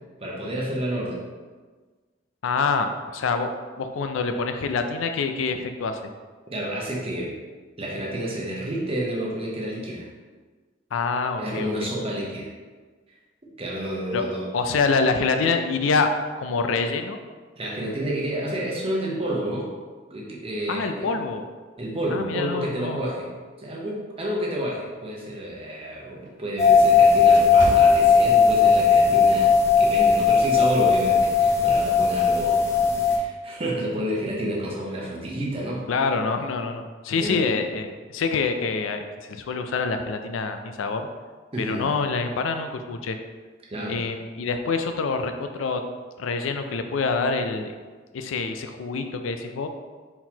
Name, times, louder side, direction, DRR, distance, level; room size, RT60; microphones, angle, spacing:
voice 1, 0.2-1.2 6.5-7.3 7.8-10.1 11.4-12.5 13.6-14.5 17.6-19.7 20.1-21.1 21.8-23.3 23.6-32.6 33.0-35.8 37.2-37.5 41.5-41.8 43.7-44.0, right 1 dB, 30° right, -3 dB, 0.8 m, -29 dB
voice 2, 2.4-3.5 3.8-6.0 10.9-11.9 14.1-14.2 14.5-16.1 16.4-17.2 20.7-21.4 22.1-23.0 35.9-41.1 41.6-43.2 43.9-45.8 46.2-47.8 48.1-49.7, left 4 dB, 85° left, 7 dB, 0.4 m, -26 dB
sound 1, 25.1-28.8 29.2-29.5 30.1-30.3, right 1 dB, 65° right, 0.7 m, -36 dB
sound 2, 26.6-33.2, left 5 dB, 15° left, 0.5 m, -17 dB
4.4 x 3.9 x 2.8 m, 1.4 s
head